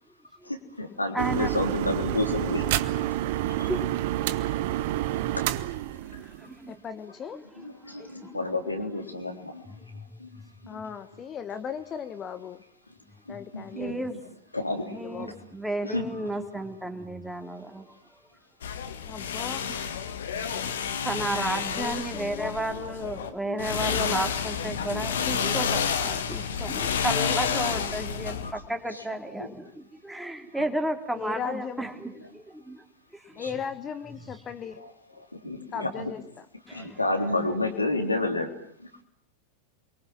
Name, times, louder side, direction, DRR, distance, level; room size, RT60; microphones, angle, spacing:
voice 1, 0.4-2.7 3.5-3.7 5.3-5.5 6.1-6.3 7.6-9.7 10.2-10.3 10.7-10.8 13.3-14.2 14.5-15.3 15.8-16.3 23.4-23.6 24.8-25.0 26.6-26.7 28.4-28.6 28.9-29.0 29.4-29.5 30.5-30.7 33.4-33.5 34.8-34.9 35.2-36.1 36.7-38.5, left 2 dB, 85° left, 4 dB, 3.6 m, -31 dB
voice 2, 1.1-1.5 3.7-3.8 6.2-6.8 7.3-7.4 7.9-8.8 9.9-10.0 13.8-14.2 14.9-17.9 20.4-20.6 21.0-32.8 33.1-33.4 36.7-37.0, right 1 dB, 5° right, 4 dB, 3.2 m, -33 dB
sound 1, 1.2-6.7, right 14 dB, 50° right, 1.2 m, -29 dB
voice 3, 6.7-7.4 10.7-12.6 13.3-13.9 14.8-15.4 19.0-19.7 21.7-22.6 31.1-31.9 33.3-34.9 35.7-36.5, left 7 dB, 25° left, 11 dB, 1.4 m, -37 dB
sound 2, 18.6-23.3 23.6-28.5, left 7 dB, 65° left, 2.1 m, -30 dB
29.5 x 23.5 x 7.5 m, 0.67 s
figure-of-eight pair, 90°, 0 cm